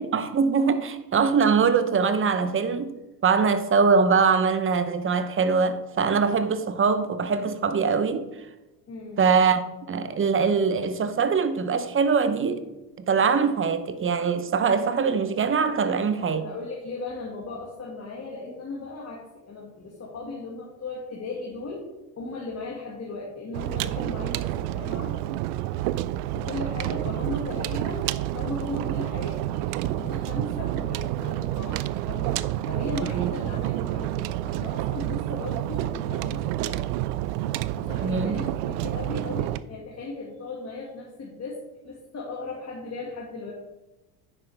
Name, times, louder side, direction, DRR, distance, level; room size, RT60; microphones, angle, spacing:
voice 1, 0.0-2.9 3.2-8.2 9.2-12.6 13.1-16.4 33.1-33.3 38.0-38.4, right 5 dB, 25° right, 0.8 m, -22 dB
voice 2, 8.9-9.2 15.6-21.8 22.2-25.2 26.3-36.8 37.8-41.6 41.8-43.5, left 3 dB, 30° left, 2.0 m, -37 dB
sound 1, 23.5-39.6, right 14 dB, 75° right, 0.5 m, -29 dB
9.9 x 6.7 x 3.4 m
hypercardioid pair, 80°, 47 cm